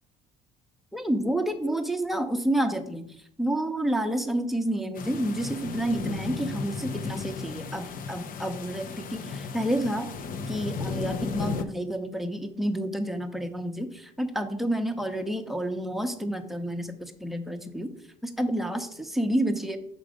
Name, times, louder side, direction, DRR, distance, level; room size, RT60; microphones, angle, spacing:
voice 1, 0.9-3.1 3.4-10.1 10.5-17.9 18.2-19.8, right 1 dB, ahead, 6 dB, 0.8 m, -29 dB
sound 1, 4.9-11.6, left 5 dB, 55° left, 0.7 m, -35 dB
6.4 x 5.2 x 5.0 m, 0.70 s
cardioid pair, 110°, 17 cm